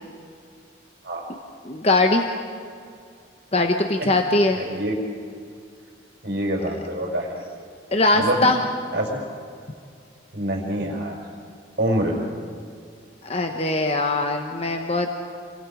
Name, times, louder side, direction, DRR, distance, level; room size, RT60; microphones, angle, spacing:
voice 1, 1.6-2.3 3.5-4.6 7.9-8.6 13.2-15.1, left 2 dB, 35° left, 4 dB, 1.0 m, -21 dB
voice 2, 4.5-5.0 6.2-7.3 8.1-8.5 8.9-9.2 10.3-11.1 11.8-12.1, right 1 dB, 60° right, -1 dB, 5.1 m, -25 dB
28.5 x 24.5 x 5.1 m, 2.3 s
head